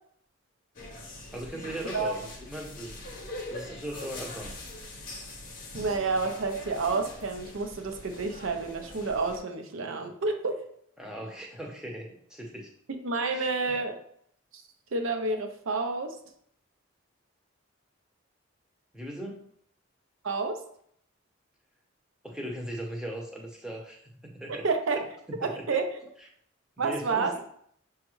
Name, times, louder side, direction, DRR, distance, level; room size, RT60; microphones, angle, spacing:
sound 1, 0.8-9.4, left 2 dB, 40° left, 0.8 m, -43 dB
voice 1, 1.3-3.0 3.5-4.5 11.0-12.7 13.3-13.5 18.9-19.5 22.2-24.7 24.9-25.6 26.8-27.3, right 1 dB, 5° right, -1 dB, 0.6 m, -38 dB
voice 2, 5.7-10.6 12.9-14.0 14.9-16.1 20.2-20.6 24.6-25.0 25.4-25.9 26.8-27.3, right 3 dB, 75° right, 5 dB, 0.6 m, -29 dB
6.3 x 2.4 x 3.0 m, 0.66 s
head